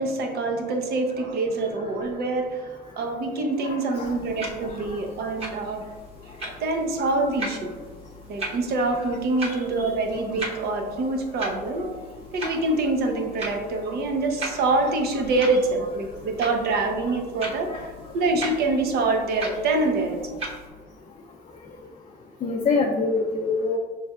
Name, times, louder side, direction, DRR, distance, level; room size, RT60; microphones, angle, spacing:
voice 1, 0.0-5.8 6.6-7.8 8.3-11.9 12.3-20.2, right 2 dB, 70° right, 3 dB, 0.8 m, -25 dB
voice 2, 3.6-4.1 9.5-9.6 17.4-17.8 22.4-23.8, left 4 dB, 40° left, -1 dB, 0.5 m, -26 dB
sound 1, 4.0-20.7, right 1 dB, 35° right, 1.1 m, -39 dB
5.3 x 3.2 x 2.4 m, 1.4 s
cardioid pair, 110°, 17 cm